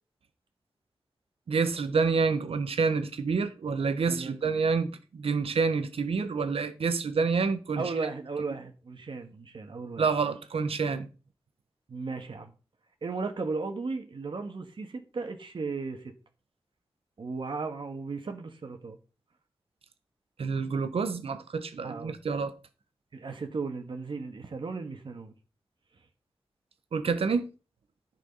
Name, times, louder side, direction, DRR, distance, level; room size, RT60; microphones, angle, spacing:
voice 1, 1.5-7.9 10.0-11.1 20.4-22.5 26.9-27.5, right 5 dB, 85° right, 1.2 m, -28 dB
voice 2, 4.0-4.6 7.8-10.1 11.9-12.5 13.0-16.1 17.2-19.0 21.8-22.2 23.1-25.3, right 4 dB, 60° right, 1.9 m, -35 dB
10.5 x 6.2 x 5.6 m
wide cardioid pair, 110°, 10 cm